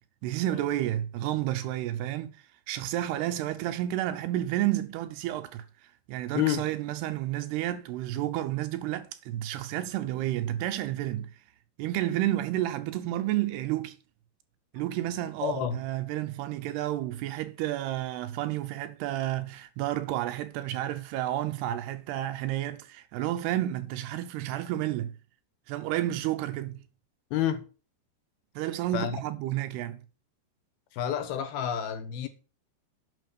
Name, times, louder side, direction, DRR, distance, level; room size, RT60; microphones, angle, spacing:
voice 1, 0.2-2.4 2.7-5.7 6.1-11.3 11.8-14.0 14.7-25.1 25.7-26.8 28.6-30.0, right 13 dB, 80° right, 2.6 m, -31 dB
voice 2, 15.4-15.8 27.3-27.6 28.9-29.2 30.9-32.3, left 10 dB, 75° left, 2.5 m, -29 dB
9.2 x 6.0 x 6.8 m
omnidirectional pair, 5.0 m